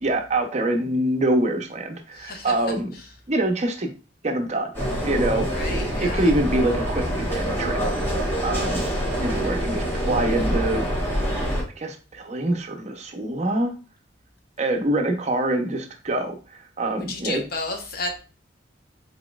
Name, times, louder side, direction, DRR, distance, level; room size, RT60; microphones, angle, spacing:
voice 1, 0.0-2.9 3.3-3.9 4.2-4.7 5.0-7.8 8.1-8.9 9.2-10.9 11.8-13.7 14.6-17.4, right 1 dB, 35° right, 4 dB, 0.6 m, -25 dB
voice 2, 2.1-2.6 2.9-3.1 5.5-6.3 9.4-9.7 17.0-18.2, left 2 dB, 55° left, 4 dB, 0.9 m, -32 dB
sound 1, 4.7-11.6, equal, 10° left, 1.3 m, -25 dB
4.1 x 4.1 x 2.3 m, 0.34 s
head